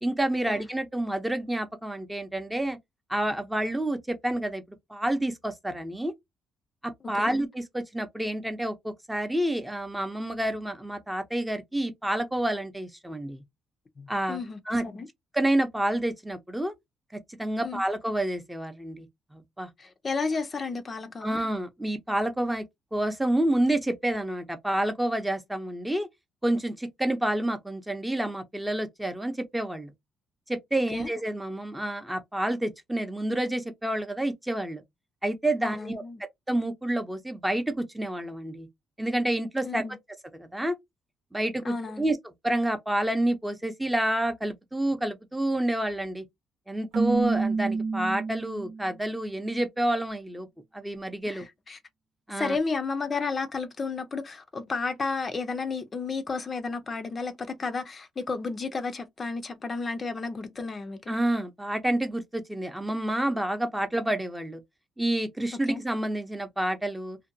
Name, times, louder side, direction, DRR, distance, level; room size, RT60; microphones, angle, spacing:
voice 1, 0.0-2.8 3.1-4.6 4.9-6.1 6.8-13.4 14.1-14.4 14.7-14.8 15.3-16.7 17.1-19.1 19.3-19.7 21.2-22.6 22.9-26.1 26.4-29.9 30.5-34.8 35.2-36.0 36.5-38.7 39.0-39.8 40.3-40.8 41.3-42.2 42.4-46.2 46.7-50.5 50.7-51.4 52.3-52.6 61.1-64.6 65.0-67.2, right 1 dB, 10° right, 0.6 m, -29 dB
voice 2, 14.0-15.1 17.6-17.8 19.8-21.4 30.9-31.1 35.6-36.2 39.6-40.0 41.7-42.1 51.3-51.8 52.3-61.1 65.7-65.8, left 4 dB, 35° left, 0.5 m, -32 dB
Keyboard (musical), 46.9-48.9, right 4 dB, 75° right, 0.9 m, -28 dB
2.6 x 2.2 x 2.5 m
cardioid pair, 90°, 0 cm